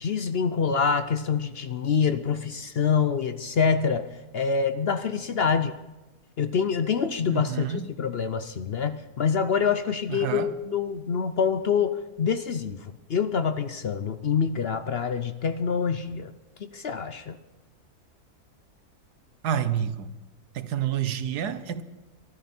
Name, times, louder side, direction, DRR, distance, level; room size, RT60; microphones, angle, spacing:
voice 1, 0.0-4.1 4.3-5.8 6.4-16.3 16.6-17.4, left 6 dB, 55° left, 10 dB, 0.7 m, -26 dB
voice 2, 7.3-7.9 10.1-10.5 19.4-20.1 20.5-21.8, right 9 dB, 90° right, 12 dB, 1.5 m, -28 dB
24.0 x 13.0 x 4.4 m, 1.1 s
omnidirectional pair, 1.7 m